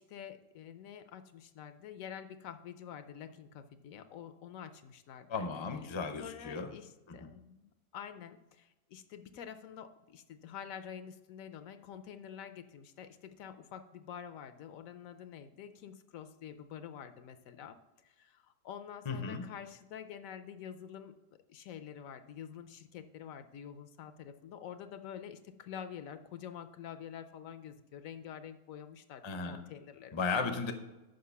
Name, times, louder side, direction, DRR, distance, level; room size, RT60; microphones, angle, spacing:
voice 1, 0.0-5.5 6.2-21.2 21.5-30.6, left 8 dB, 70° left, 10 dB, 0.9 m, -47 dB
voice 2, 5.3-6.7 7.1-7.3 19.1-19.4 29.2-29.6 30.1-30.7, left 4 dB, 35° left, 6 dB, 0.4 m, -35 dB
6.5 x 5.4 x 6.9 m, 1.0 s
omnidirectional pair, 1.6 m